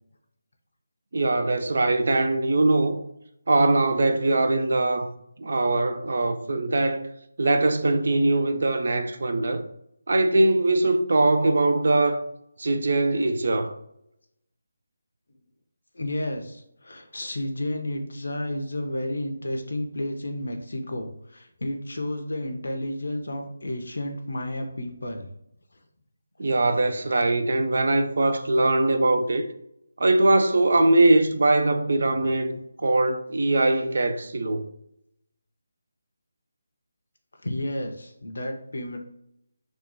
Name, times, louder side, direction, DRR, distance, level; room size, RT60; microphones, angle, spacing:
voice 1, 1.1-3.0 3.5-5.1 5.4-7.1 7.4-9.6 10.1-12.2 12.6-13.7 26.4-29.4 30.0-34.7, right 2 dB, 60° right, 0.3 m, -22 dB
voice 2, 15.9-25.3 32.0-32.3 37.4-39.0, left 1 dB, 70° left, 0.5 m, -31 dB
2.7 x 2.2 x 4.0 m
figure-of-eight pair, 155°, 0 cm